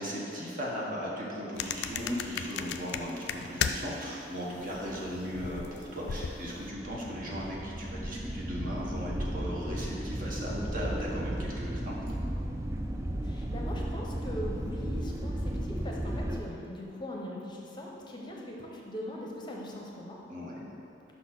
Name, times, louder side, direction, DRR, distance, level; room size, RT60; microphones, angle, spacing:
voice 1, 0.0-12.0 20.3-20.7, equal, 50° right, -4 dB, 1.1 m, -37 dB
sound 1, 1.6-4.1 4.3-6.6, left 7 dB, 70° left, 0.3 m, -35 dB
sound 2, 4.5-16.4, right 1 dB, 15° right, 0.3 m, -35 dB
voice 2, 13.2-20.2, left 1 dB, 25° left, -1 dB, 0.7 m, -40 dB
5.6 x 4.2 x 5.9 m, 2.8 s
head